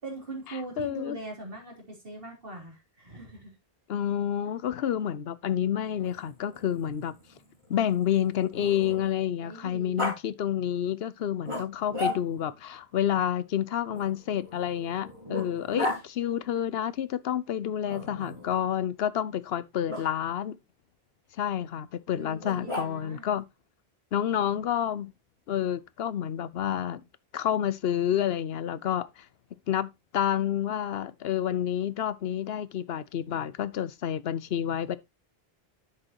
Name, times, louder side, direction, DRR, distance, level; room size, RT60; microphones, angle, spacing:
voice 1, 0.0-3.5 9.4-10.1 22.1-23.3, right 2 dB, 65° right, 3.7 m, -41 dB
voice 2, 0.8-1.2 3.9-7.2 7.7-20.6 21.4-23.4 24.1-25.1 25.5-27.0 27.3-29.3 29.7-35.0, left 10 dB, 75° left, 0.9 m, -29 dB
Growling, 5.9-9.3 10.0-10.2 11.5-12.6 13.9-16.0 17.9-18.6 19.9-20.0 22.4-23.2, left 2 dB, 30° right, 4.5 m, -36 dB
10.0 x 7.8 x 2.9 m
omnidirectional pair, 1.0 m